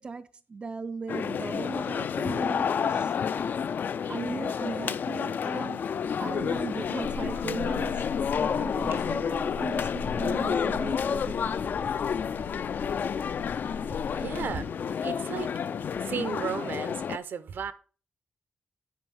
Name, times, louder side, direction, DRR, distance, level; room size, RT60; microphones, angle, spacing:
voice 1, 0.0-3.2 4.1-5.9 6.2-8.1 8.4-11.9, right 4 dB, 30° right, 0.3 m, -37 dB
sound 1, 1.1-17.2, left 7 dB, 60° left, 0.4 m, -30 dB
sound 2, 6.0-16.0, right 5 dB, 85° right, 1.9 m, -54 dB
sound 3, 7.0-14.6, left 6 dB, 90° left, 2.5 m, -41 dB
voice 2, 14.1-14.7 15.0-15.5 16.0-17.7, right 7 dB, 65° right, 0.7 m, -34 dB
9.4 x 4.6 x 6.3 m
wide cardioid pair, 165°, 4 cm